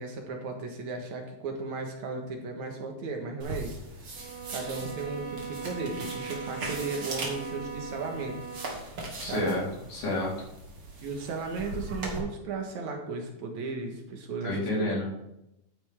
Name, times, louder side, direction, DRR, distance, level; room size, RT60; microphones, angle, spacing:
voice 1, 0.0-3.8 4.5-8.5 9.2-9.5 11.0-15.0, right 4 dB, 65° right, 3 dB, 2.8 m, -35 dB
sound 1, 3.4-12.2, right 2 dB, 45° right, 2.9 m, -40 dB
sound 2, 4.1-8.9, right 5 dB, 85° right, 5.2 m, -40 dB
voice 2, 9.2-9.6 9.9-10.3 14.4-15.1, left 1 dB, 80° left, -5 dB, 5.7 m, -29 dB
13.0 x 9.9 x 3.7 m, 0.86 s
omnidirectional pair, 3.6 m